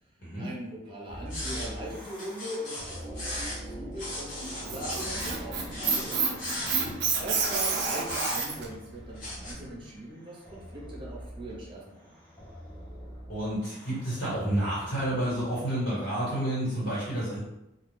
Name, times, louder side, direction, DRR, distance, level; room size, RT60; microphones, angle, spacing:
voice 1, 0.4-6.6 7.2-12.1, right 1 dB, 25° right, -4 dB, 0.8 m, -40 dB
sound 1, 1.1-15.6, equal, 5° left, 0.6 m, -44 dB
sound 2, 1.3-1.7 2.2-3.6 4.0-5.4 5.7-6.8 7.4-8.7 9.2-9.5, left 1 dB, 40° left, 1.0 m, -36 dB
Squeak, 4.4-8.7, right 5 dB, 55° right, 0.4 m, -29 dB
voice 2, 6.6-6.9 13.3-17.4, right 1 dB, 60° left, -9 dB, 1.5 m, -30 dB
2.4 x 2.3 x 3.3 m, 0.89 s
head